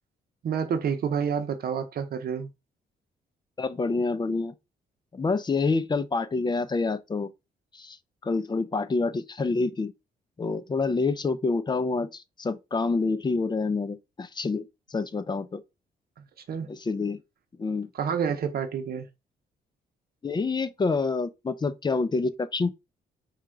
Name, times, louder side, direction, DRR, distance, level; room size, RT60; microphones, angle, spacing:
voice 1, 0.4-2.5 16.5-16.7 17.9-19.1, right 7 dB, 65° right, 0.8 m, -28 dB
voice 2, 3.6-4.5 5.1-7.3 7.7-8.0 8.2-9.9 10.4-14.7 14.9-15.6 16.7-17.2 17.6-17.9 20.2-22.7, left 3 dB, 25° left, 0.5 m, -27 dB
4.3 x 2.4 x 3.7 m
cardioid pair, 70°, 17 cm